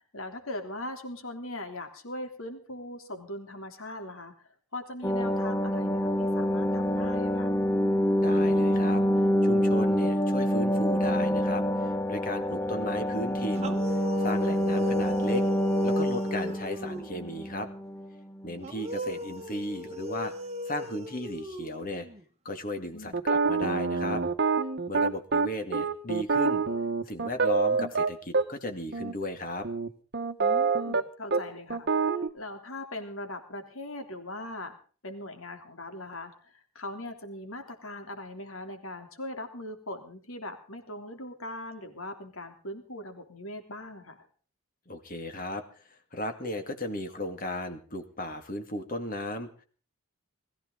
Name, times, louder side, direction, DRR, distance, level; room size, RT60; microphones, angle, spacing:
voice 1, 0.0-7.5 14.4-14.6 22.9-23.3 30.4-34.8 35.0-44.3, left 1 dB, 65° left, 6 dB, 3.3 m, -40 dB
sound 1, 5.0-18.1 18.4-18.5, equal, 10° left, 0.7 m, -26 dB
voice 2, 8.2-15.4 15.8-17.7 18.4-20.3 20.7-22.1 22.4-24.2 24.9-26.6 27.1-29.7 44.9-45.6 46.1-49.6, left 1 dB, 40° left, 6 dB, 2.2 m, -35 dB
sound 2, 13.5-17.3 18.6-22.2, left 1 dB, 30° right, 1.3 m, -37 dB
sound 3, 23.1-28.5 28.9-29.1 29.6-31.0 31.3-31.4 31.7-32.3, right 4 dB, 45° right, 1.2 m, -26 dB
21.0 x 15.0 x 3.9 m, 0.40 s
head